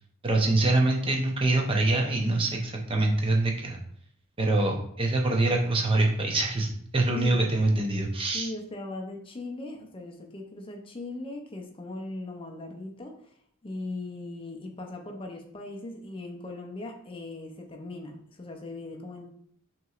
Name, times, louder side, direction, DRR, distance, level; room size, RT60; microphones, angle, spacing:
voice 1, 0.2-3.8 4.4-8.5, right 2 dB, 25° right, 1 dB, 0.6 m, -25 dB
voice 2, 8.3-13.3 13.6-19.3, left 2 dB, 25° left, 2 dB, 0.5 m, -39 dB
5.8 x 2.9 x 2.4 m, 0.65 s
head